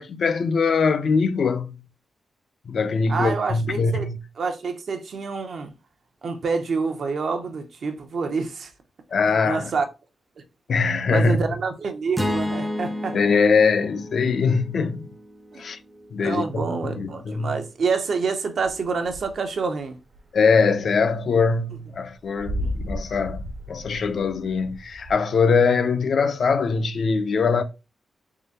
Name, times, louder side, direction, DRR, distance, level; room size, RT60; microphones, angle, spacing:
voice 1, 0.0-1.8 2.7-4.2 9.1-9.7 10.7-11.4 13.1-15.1 15.6-15.8 16.1-17.6 20.3-27.6, left 5 dB, 65° left, 0.4 m, -22 dB
voice 2, 3.1-4.1 4.4-5.7 6.2-8.7 9.4-9.8 11.1-13.2 15.5-15.6 16.2-20.0 22.6-22.7, right 4 dB, 65° right, 0.6 m, -27 dB
sound 1, 12.2-16.4, left 1 dB, 10° right, 0.5 m, -31 dB
sound 2, 18.6-19.7 19.9-25.1, equal, 80° right, 1.2 m, -34 dB
3.7 x 3.1 x 2.7 m
wide cardioid pair, 125°, 0 cm